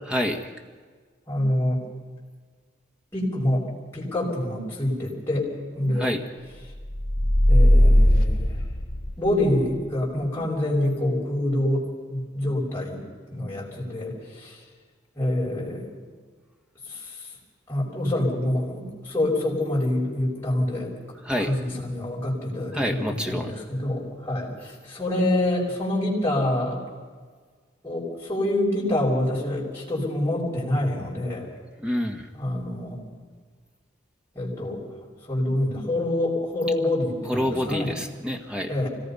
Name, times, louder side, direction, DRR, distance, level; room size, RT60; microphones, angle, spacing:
voice 1, 0.1-0.5 6.0-6.2 21.2-21.5 22.7-23.6 31.8-32.3 37.2-38.7, equal, 5° right, 2 dB, 1.7 m, -27 dB
voice 2, 1.3-1.8 3.1-3.6 3.9-6.1 7.5-8.5 9.2-13.0 13.3-14.6 15.1-15.8 16.9-17.2 17.7-20.9 21.4-26.8 27.8-31.5 32.4-33.0 34.3-34.8 35.3-37.9 38.7-38.9, left 1 dB, 15° left, -7 dB, 6.6 m, -26 dB
sound 1, 6.8-9.5, equal, 50° left, 1.3 m, -18 dB
25.0 x 18.5 x 5.7 m, 1.5 s
head